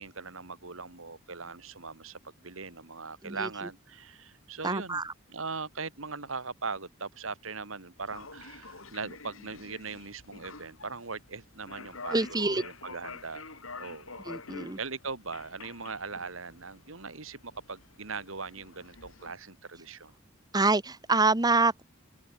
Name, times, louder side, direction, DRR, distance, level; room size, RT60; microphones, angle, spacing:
voice 1, 0.0-5.0 5.3-14.3 14.8-20.1, right 4 dB, 75° right, 2.6 m, -40 dB
voice 2, 4.6-5.1 12.1-12.6 14.2-14.8 20.5-21.8, right 3 dB, 20° right, 1.1 m, -26 dB
sound 1, 8.0-19.3, left 4 dB, 80° left, 4.9 m, -47 dB
open air
head